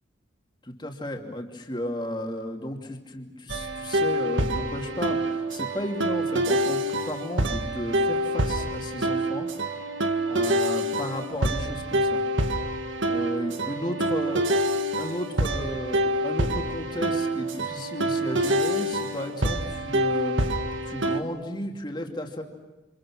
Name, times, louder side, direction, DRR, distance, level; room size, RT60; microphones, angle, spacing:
voice 1, 0.6-9.5 10.3-12.2 13.1-14.5 15.0-20.4 20.8-22.4, left 1 dB, 25° left, 2 dB, 2.9 m, -34 dB
sound 1, 3.5-21.2, right 1 dB, 80° right, 1.9 m, -26 dB
28.5 x 27.5 x 6.3 m, 1.1 s
head